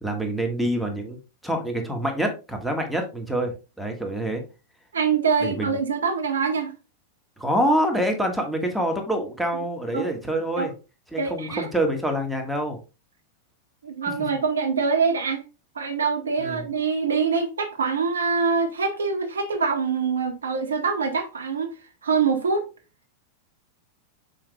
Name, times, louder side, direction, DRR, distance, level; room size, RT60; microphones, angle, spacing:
voice 1, 0.0-4.4 5.4-5.7 7.4-10.7 11.1-12.8 16.4-16.7, right 1 dB, ahead, 1.8 m, -26 dB
voice 2, 4.9-6.7 9.9-10.1 10.6-10.7 11.2-11.7 13.8-15.4 15.7-21.7 22.0-22.7, right 5 dB, 70° right, 1.4 m, -24 dB
7.8 x 5.8 x 2.4 m
figure-of-eight pair, 90°, 0 cm